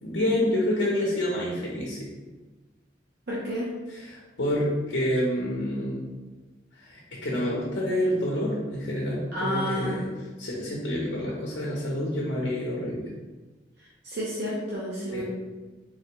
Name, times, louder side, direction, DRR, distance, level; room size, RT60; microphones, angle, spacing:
voice 1, 0.0-2.1 4.0-6.0 6.7-10.1 10.4-13.1 15.1-15.2, left 1 dB, 75° left, -3 dB, 0.8 m, -28 dB
voice 2, 3.3-3.7 9.3-10.0 13.8-15.2, equal, 60° right, -7 dB, 0.8 m, -31 dB
3.9 x 3.3 x 2.9 m, 1.2 s
head